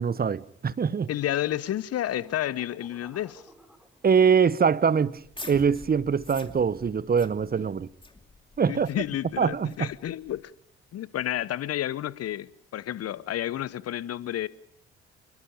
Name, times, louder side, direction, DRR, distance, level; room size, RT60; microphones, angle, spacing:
voice 1, 0.0-1.1 4.0-5.2 5.5-7.9 8.6-8.9 9.4-9.9, right 6 dB, 30° right, 1.0 m, -23 dB
voice 2, 1.1-3.4 8.7-10.5 10.9-14.5, left 12 dB, 50° left, 1.0 m, -31 dB
sound 1, 2.1-4.5, equal, ahead, 4.5 m, -54 dB
sound 2, 5.1-10.4, left 2 dB, 15° left, 2.7 m, -47 dB
27.0 x 22.5 x 5.2 m
figure-of-eight pair, 45°, 31 cm